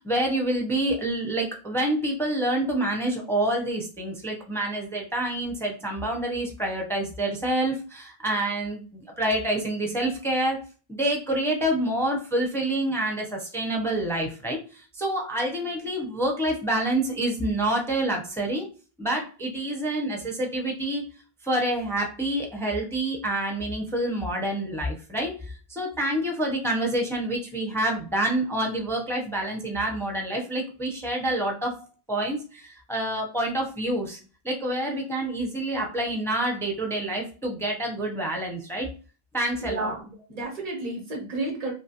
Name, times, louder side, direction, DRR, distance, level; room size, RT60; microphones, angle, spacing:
voice 1, 0.0-8.8 9.2-10.6 10.9-18.7 19.0-21.0 21.4-31.8 32.1-34.2 34.4-38.9 39.3-39.9, right 1 dB, 5° left, 1 dB, 0.4 m, -27 dB
voice 2, 39.6-40.0 40.3-41.7, right 2 dB, 40° right, -1 dB, 1.0 m, -31 dB
2.8 x 2.4 x 2.7 m, 0.35 s
omnidirectional pair, 1.0 m